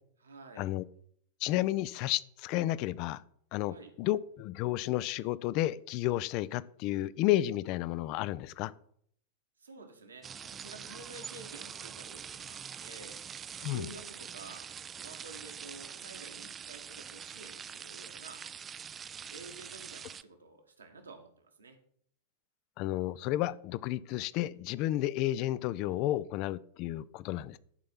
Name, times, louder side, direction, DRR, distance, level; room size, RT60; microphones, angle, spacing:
voice 1, 0.2-0.7 3.6-3.9 9.6-13.2 13.6-14.7 15.0-18.4 19.2-21.8, right 3 dB, 75° right, 4 dB, 1.6 m, -51 dB
voice 2, 1.4-3.2 3.5-8.7 13.6-13.9 22.8-27.6, left 15 dB, 40° left, 18 dB, 0.4 m, -32 dB
sound 1, 10.2-20.2, right 7 dB, 25° right, 0.4 m, -44 dB
11.0 x 4.4 x 5.6 m, 0.64 s
figure-of-eight pair, 90°, 0 cm